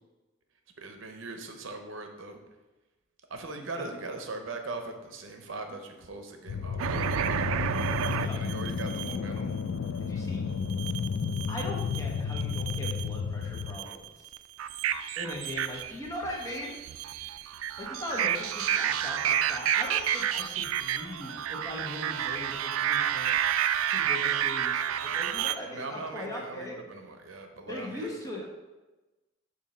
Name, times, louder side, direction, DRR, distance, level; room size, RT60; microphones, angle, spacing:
voice 1, 0.8-2.4 3.3-7.0 8.2-9.6 25.3-28.1, right 3 dB, 70° right, 5 dB, 0.7 m, -40 dB
sound 1, 6.5-13.8, left 6 dB, 75° left, 0.4 m, -32 dB
sound 2, 6.8-9.2 10.7-12.0 12.3-13.2 13.6-25.5, right 9 dB, 90° right, 0.3 m, -30 dB
voice 2, 8.1-8.4 10.0-10.4 11.5-14.3 15.2-16.8 17.8-23.3 23.9-26.8 27.7-28.5, left 1 dB, 15° left, -2 dB, 1.1 m, -39 dB
7.2 x 2.7 x 5.5 m, 1.1 s
head